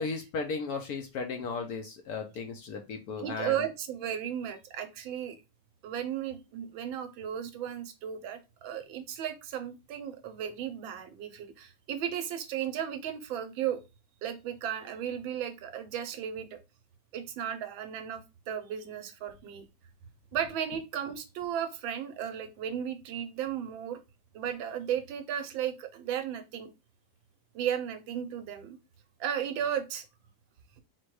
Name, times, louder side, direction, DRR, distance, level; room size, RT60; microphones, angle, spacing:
voice 1, 0.0-3.7, left 4 dB, 70° left, 4 dB, 0.9 m, -35 dB
voice 2, 3.2-5.4 5.8-13.8 14.2-16.6 17.1-19.6 20.3-24.0 24.3-26.7 27.5-28.8 29.2-30.0, right 9 dB, 90° right, 8 dB, 1.5 m, -35 dB
4.3 x 2.2 x 4.6 m, 0.27 s
omnidirectional pair, 2.1 m